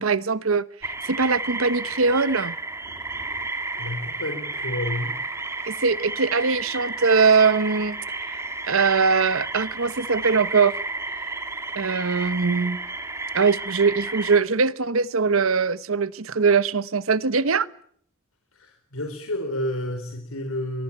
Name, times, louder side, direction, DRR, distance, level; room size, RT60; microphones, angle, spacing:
voice 1, 0.0-2.5 5.7-8.0 8.6-10.7 11.7-12.8 13.3-17.7, right 5 dB, 85° right, 1.0 m, -21 dB
sound 1, 0.8-14.4, right 3 dB, 15° right, 2.5 m, -32 dB
voice 2, 3.7-5.2 18.5-20.8, left 1 dB, 90° left, 4.2 m, -30 dB
24.5 x 22.5 x 8.7 m
head